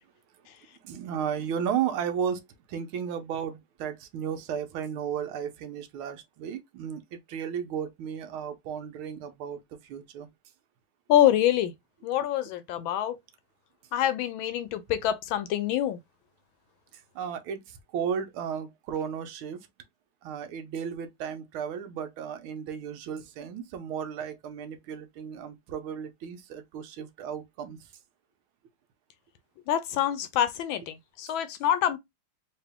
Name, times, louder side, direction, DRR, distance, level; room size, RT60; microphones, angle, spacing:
voice 1, 0.8-10.3 16.9-19.7 20.2-27.8, right 8 dB, 75° right, 1.5 m, -34 dB
voice 2, 11.1-11.7 12.0-13.2 13.9-16.0 29.7-32.0, left 11 dB, 75° left, 1.3 m, -26 dB
3.8 x 2.8 x 3.4 m
omnidirectional pair, 2.4 m